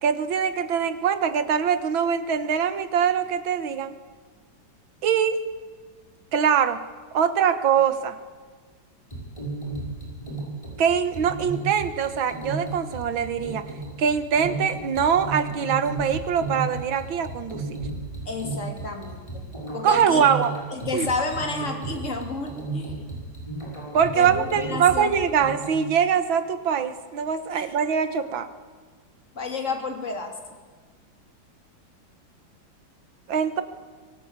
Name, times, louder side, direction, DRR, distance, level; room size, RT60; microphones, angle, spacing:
voice 1, 0.0-3.9 5.0-5.4 6.3-6.8 7.1-8.2 10.8-13.7 14.0-17.8 19.8-20.5 20.9-21.1 23.9-28.5 33.3-33.6, right 7 dB, 90° right, 11 dB, 2.1 m, -23 dB
sound 1, 9.1-25.9, right 3 dB, 15° left, 6.6 m, -34 dB
voice 2, 18.2-20.3 20.7-23.0 24.1-25.1 27.5-27.7 29.3-30.3, left 3 dB, 40° left, 3 dB, 3.3 m, -31 dB
23.5 x 18.5 x 8.9 m, 1.5 s
omnidirectional pair, 2.1 m